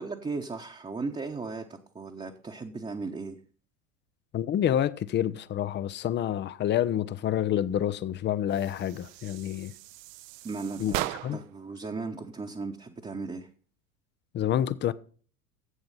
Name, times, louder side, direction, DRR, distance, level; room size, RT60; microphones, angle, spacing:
voice 1, 0.0-3.4 10.4-11.0 11.3-13.5, right 4 dB, 15° right, 1.1 m, -36 dB
voice 2, 4.3-9.7 10.8-10.9 11.2-11.4 14.3-14.9, left 10 dB, 25° left, 0.6 m, -28 dB
sound 1, 8.5-11.6, right 15 dB, 55° right, 0.8 m, -38 dB
11.0 x 7.9 x 5.6 m
figure-of-eight pair, 75°, 45 cm